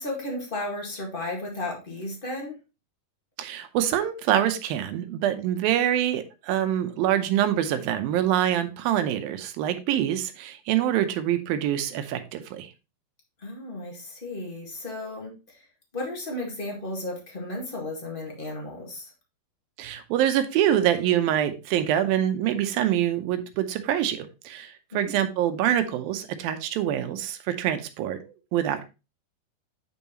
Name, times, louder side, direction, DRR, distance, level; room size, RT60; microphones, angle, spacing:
voice 1, 0.0-2.6 13.4-15.7 15.9-19.1 24.9-25.2, left 1 dB, 35° left, 0 dB, 0.8 m, -34 dB
voice 2, 3.4-12.7 19.8-28.8, right 11 dB, 80° right, 9 dB, 2.5 m, -25 dB
8.8 x 5.5 x 2.9 m, 0.28 s
omnidirectional pair, 4.3 m